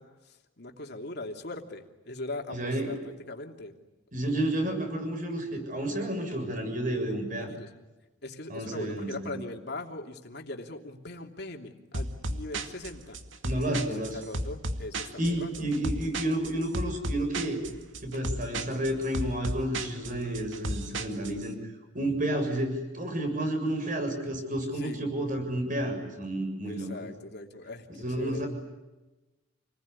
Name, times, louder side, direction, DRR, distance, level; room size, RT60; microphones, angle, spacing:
voice 1, 0.0-3.7 7.4-7.7 8.2-13.2 13.9-15.5 24.7-25.0 26.6-27.9 28.2-28.4, left 2 dB, 60° left, 3 dB, 3.1 m, -40 dB
voice 2, 2.5-2.9 4.1-7.5 8.5-9.4 13.4-14.2 15.2-17.6 18.0-21.6 21.9-27.1 27.9-28.5, right 1 dB, 45° right, 5 dB, 7.3 m, -31 dB
sound 1, 11.9-21.5, right 1 dB, 80° right, 2.2 m, -34 dB
29.0 x 20.5 x 9.9 m, 1.1 s
head